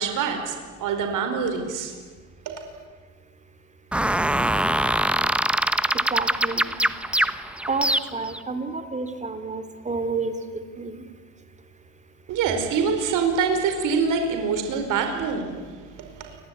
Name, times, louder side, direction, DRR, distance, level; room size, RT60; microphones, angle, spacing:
voice 1, 0.0-1.9 2.4-2.6 12.3-16.4, right 5 dB, 55° right, 5 dB, 4.8 m, -25 dB
sound 1, 3.9-8.4, right 1 dB, 5° right, 1.0 m, -23 dB
voice 2, 6.1-6.7 7.7-10.4 10.8-11.0, right 4 dB, 20° right, 9 dB, 3.3 m, -29 dB
29.0 x 21.0 x 9.5 m, 1.5 s
supercardioid pair, 120°, 38 cm